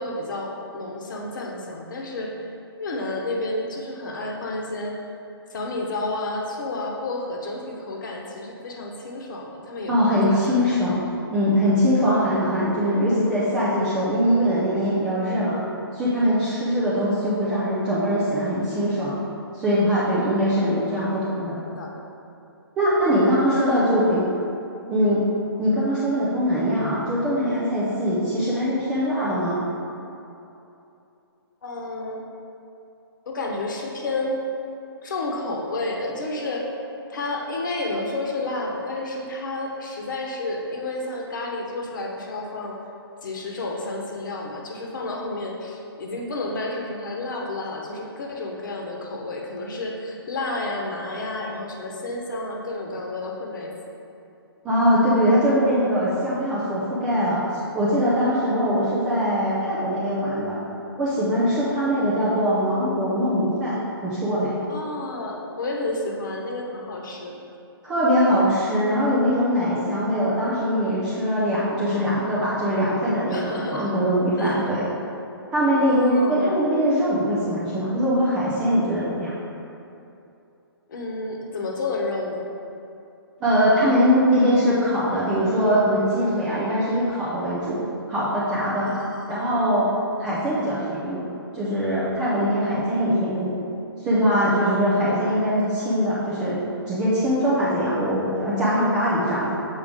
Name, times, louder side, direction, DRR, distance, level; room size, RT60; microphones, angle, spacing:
voice 1, 0.0-2.5 2.8-4.9 5.5-10.8 20.1-20.4 21.6-22.0 23.1-24.2 31.6-32.2 33.3-34.4 35.0-36.7 37.1-42.8 43.2-53.7 58.6-58.9 64.7-67.4 73.3-73.9 74.4-74.6 75.9-76.6 80.9-82.4 88.8-89.6 94.5-95.1, left 2 dB, 50° left, 0 dB, 1.0 m, -31 dB
voice 2, 9.9-11.0 11.3-15.6 15.9-19.1 19.5-21.6 22.8-24.0 24.9-25.2 25.6-29.6 54.6-57.4 57.7-60.6 61.0-64.6 67.8-74.9 75.5-79.3 83.4-87.8 88.1-88.9 89.3-89.9 90.2-91.2 91.5-93.5 94.0-99.5, equal, 5° right, -9 dB, 0.3 m, -22 dB
7.2 x 4.9 x 3.6 m, 2.7 s
hypercardioid pair, 170°, 13 cm